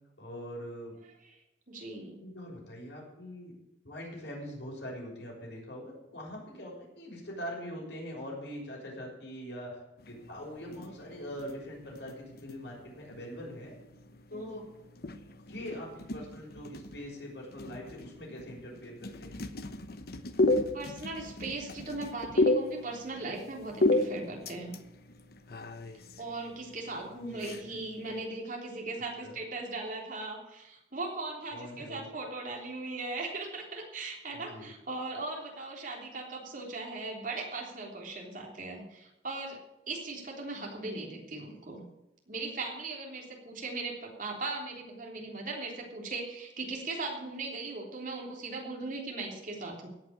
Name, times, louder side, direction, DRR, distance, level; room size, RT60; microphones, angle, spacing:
voice 1, 0.2-0.9 2.0-3.5 3.8-9.8 10.1-13.7 14.3-14.7 15.5-19.4 27.3-27.8 29.2-29.4 31.5-32.1 34.3-34.7, equal, 85° left, -2 dB, 6.2 m, -43 dB
voice 2, 1.7-2.2 14.3-14.6 20.7-24.7 26.2-39.6 39.9-41.8 42.3-49.9, right 3 dB, 50° right, -1 dB, 3.5 m, -38 dB
sound 1, 10.0-28.2, left 2 dB, 60° left, 0.9 m, -35 dB
17.0 x 6.0 x 8.8 m, 0.90 s
head